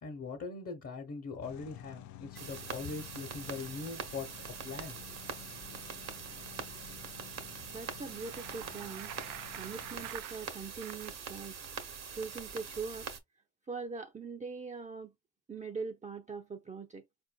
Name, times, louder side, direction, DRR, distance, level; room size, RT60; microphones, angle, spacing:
voice 1, 0.0-4.3 4.6-5.0, left 4 dB, 50° left, 1.0 m, -41 dB
sound 1, 1.4-10.1, left 13 dB, 70° left, 0.4 m, -52 dB
sound 2, 2.3-13.2, right 6 dB, 60° right, 1.0 m, -44 dB
voice 2, 7.7-9.2 9.5-11.7 12.1-13.1 13.7-15.1 15.5-17.0, right 4 dB, 25° right, 0.5 m, -42 dB
Bicycle, 8.0-11.2, right 12 dB, 85° right, 0.5 m, -47 dB
4.4 x 2.6 x 2.3 m
cardioid pair, 90°, 30 cm